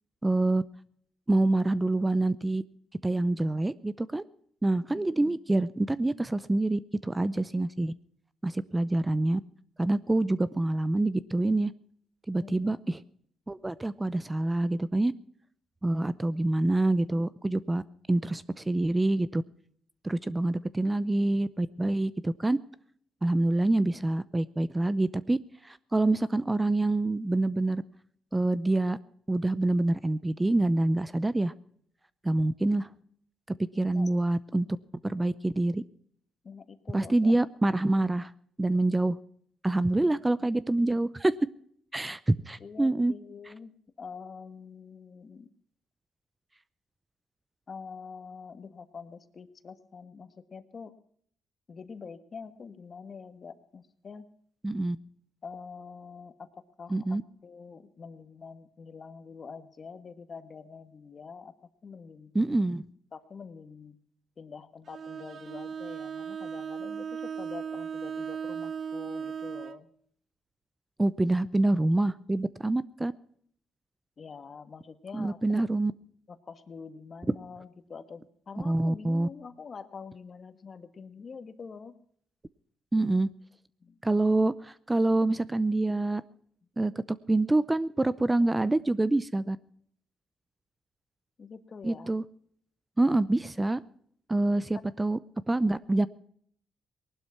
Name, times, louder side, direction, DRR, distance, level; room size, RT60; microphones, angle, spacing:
voice 1, 0.2-0.6 1.3-2.6 3.0-4.2 4.6-7.9 8.4-9.4 9.8-11.7 12.3-13.0 13.5-15.1 15.8-17.8 18.1-19.4 20.0-22.6 23.2-25.4 25.6-27.8 28.3-29.0 29.3-31.5 32.2-32.9 33.8-34.7 35.0-35.8 36.9-38.3 38.6-39.2 39.6-41.3 41.9-43.1 54.6-55.0 56.9-57.2 62.3-62.8 71.0-73.1 75.1-75.9 78.6-79.3 82.9-83.3 84.0-86.2 86.8-89.6 91.8-92.2 93.0-93.8 94.3-95.2 95.5-96.1, right 2 dB, 15° right, 17 dB, 0.6 m, -26 dB
voice 2, 4.9-5.4 12.4-12.8 33.9-34.1 36.4-37.3 40.0-40.1 40.4-40.5 42.6-45.5 47.7-51.0 51.7-54.3 55.4-61.5 61.8-62.3 63.1-64.0 64.4-69.9 74.2-75.6 76.3-82.0 83.8-84.0 91.4-92.1, left 5 dB, 40° left, 11 dB, 1.5 m, -45 dB
Bowed string instrument, 64.9-69.8, right 7 dB, 50° right, 0.8 m, -37 dB
19.0 x 12.0 x 5.7 m, 0.64 s
cardioid pair, 90°, 0 cm